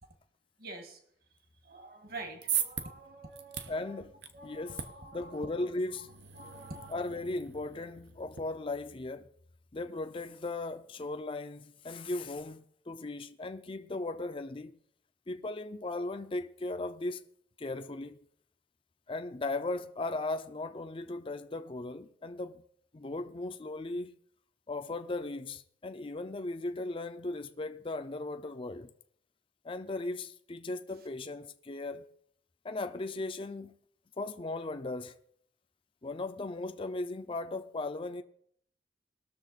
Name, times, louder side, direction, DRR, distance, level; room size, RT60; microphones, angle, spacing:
voice 1, 0.6-1.0 1.6-4.0 4.3-5.5 6.4-7.0, right 2 dB, 55° right, 1.8 m, -46 dB
sound 1, 2.1-8.4, right 9 dB, 80° right, 1.0 m, -40 dB
voice 2, 3.7-4.1 4.4-4.8 5.1-6.1 6.9-9.3 9.7-14.8 15.3-17.2 17.6-18.2 19.1-22.6 22.9-24.2 24.7-28.9 29.6-32.1 32.6-33.7 34.2-35.1 36.0-38.2, left 2 dB, 30° left, 0.5 m, -37 dB
20.0 x 6.8 x 4.1 m
head